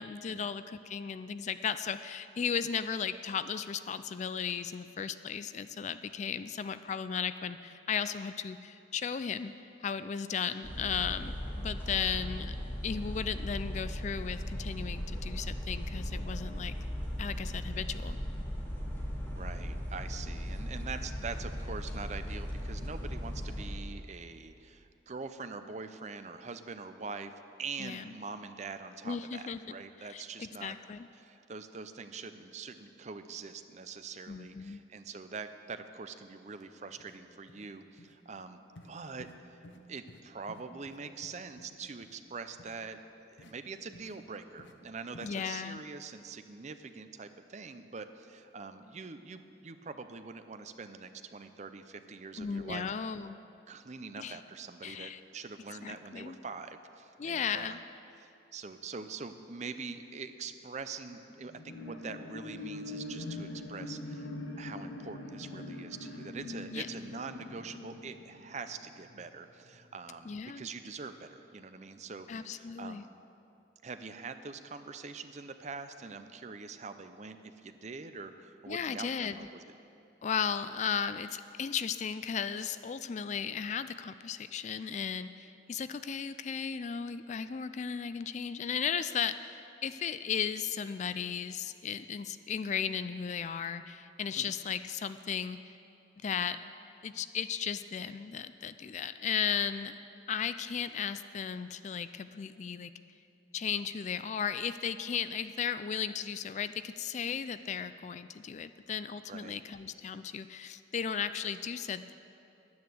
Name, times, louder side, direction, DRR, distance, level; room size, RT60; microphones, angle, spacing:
voice 1, 0.0-9.5 9.8-12.5 12.8-16.8 17.2-18.2 27.8-28.0 29.0-29.6 30.1-31.1 34.3-34.8 45.2-45.8 52.4-53.4 54.2-54.4 54.8-55.2 55.8-56.4 57.2-57.8 66.7-66.9 70.2-70.7 72.3-73.1 78.7-79.5 80.2-95.7 96.2-96.6 97.0-99.9 100.3-102.9 103.5-112.1, left 7 dB, 40° left, 12 dB, 0.3 m, -35 dB
sound 1, 10.6-23.7, equal, 10° left, 2.2 m, -37 dB
voice 2, 11.9-12.3 19.3-27.3 27.6-30.8 31.1-38.6 38.8-39.6 39.9-43.0 43.3-52.9 53.7-57.8 58.2-64.3 64.6-73.1 73.8-79.6 94.4-94.5 109.3-109.6, right 4 dB, 40° right, 9 dB, 0.5 m, -44 dB
sound 2, 36.5-36.6 37.0-37.2 37.5-37.7 38.0-38.1 38.7-38.9 39.2-39.4 39.6-39.8 40.1-40.2 40.5-41.7 42.0-42.2 42.6-42.7 43.4-43.5 43.9-44.2 44.6-44.7 45.1-45.3, left 1 dB, 90° left, 0.8 m, -53 dB
sound 3, 61.5-69.3 69.7-69.8, left 2 dB, 70° left, 1.3 m, -43 dB
10.5 x 9.5 x 7.8 m, 2.7 s
head